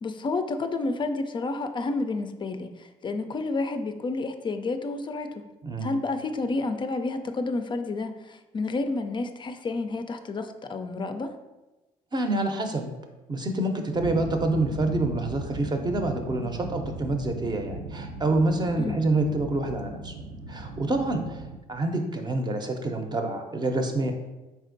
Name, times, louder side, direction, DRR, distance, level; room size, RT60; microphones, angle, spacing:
voice 1, 0.0-5.5 5.8-11.3 18.8-19.0, left 3 dB, 35° left, 7 dB, 0.4 m, -30 dB
voice 2, 12.1-12.9 13.3-20.1 20.5-21.4 21.7-24.1, right 2 dB, 30° right, 5 dB, 0.6 m, -27 dB
sound 1, 13.9-21.6, right 2 dB, 75° right, 0.5 m, -37 dB
4.2 x 3.5 x 2.6 m, 1.1 s
supercardioid pair, 60°, 15 cm